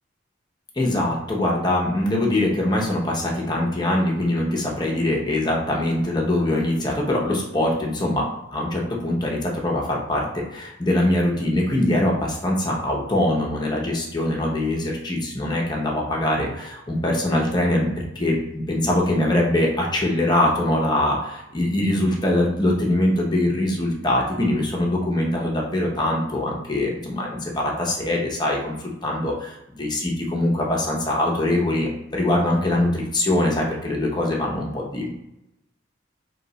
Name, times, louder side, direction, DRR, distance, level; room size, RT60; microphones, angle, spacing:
voice 1, 0.8-28.7 29.0-35.1, left 1 dB, 20° left, -2 dB, 0.6 m, -23 dB
2.7 x 2.2 x 3.9 m, 0.89 s
head